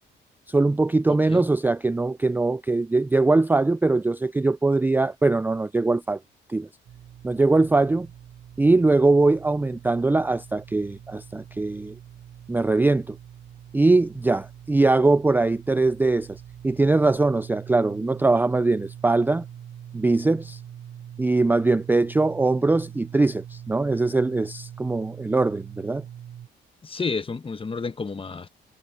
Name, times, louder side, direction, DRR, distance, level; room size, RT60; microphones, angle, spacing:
voice 1, 0.5-6.2 6.5-6.7 7.2-8.1 8.6-12.0 12.5-13.2 13.7-19.4 19.9-20.6 21.2-26.0, right 3 dB, 10° right, 0.4 m, -21 dB
voice 2, 1.1-1.5 26.8-28.5, left 4 dB, 25° left, 1.3 m, -31 dB
sound 1, 6.9-26.5, right 10 dB, 65° right, 7.3 m, -43 dB
cardioid pair, 90°, 20 cm